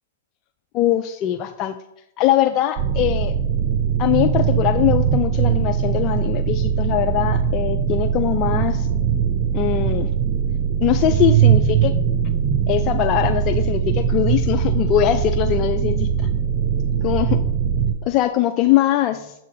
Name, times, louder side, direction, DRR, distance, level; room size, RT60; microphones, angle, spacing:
voice 1, 0.7-1.7 2.2-3.3 4.0-8.9 9.5-10.1 10.8-11.9 12.7-16.3 17.0-17.4 18.0-19.3, left 12 dB, 40° left, 6 dB, 0.3 m, -21 dB
sound 1, 2.8-17.9, right 8 dB, 45° right, 0.5 m, -20 dB
7.3 x 2.5 x 5.6 m, 0.87 s
hypercardioid pair, 110°, 0 cm